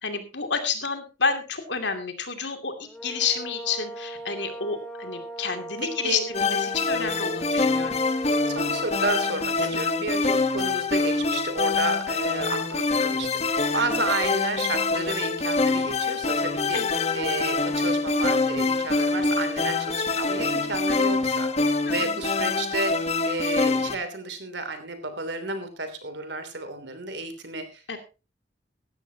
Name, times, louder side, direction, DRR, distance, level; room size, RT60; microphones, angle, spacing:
voice 1, 0.0-8.0 9.7-9.8 13.7-14.0 16.7-17.0 21.8-22.2 27.9-28.0, left 5 dB, 75° left, 6 dB, 2.6 m, -30 dB
sound 1, 2.8-9.4, right 2 dB, 5° left, 2.2 m, -39 dB
sound 2, 6.3-23.9, left 3 dB, 35° left, 1.2 m, -25 dB
voice 2, 8.2-16.8 17.1-23.0 23.2-28.0, right 3 dB, 75° right, 9 dB, 3.1 m, -32 dB
16.5 x 13.0 x 2.9 m, 0.30 s
head